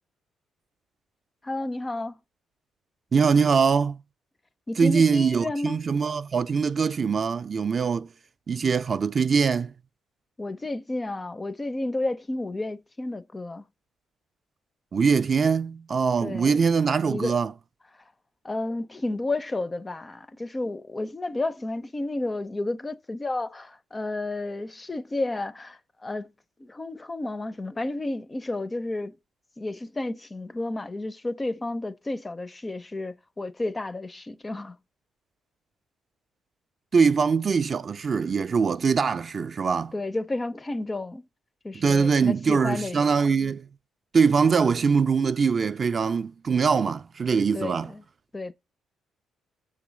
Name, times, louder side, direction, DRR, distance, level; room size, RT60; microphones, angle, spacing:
voice 1, 1.4-2.2 4.7-5.8 10.4-13.6 16.2-16.5 17.1-17.4 18.4-26.3 26.6-29.2 29.6-34.8 39.9-41.2 41.6-43.2 47.5-48.0 48.3-48.5, left 2 dB, 20° left, 0.4 m, -31 dB
voice 2, 3.1-4.0 4.8-8.1 8.5-9.7 14.9-17.5 36.9-39.9 41.7-43.7 44.1-47.9, right 5 dB, 40° right, 0.3 m, -22 dB
6.6 x 3.9 x 6.2 m
cardioid pair, 90°, 0 cm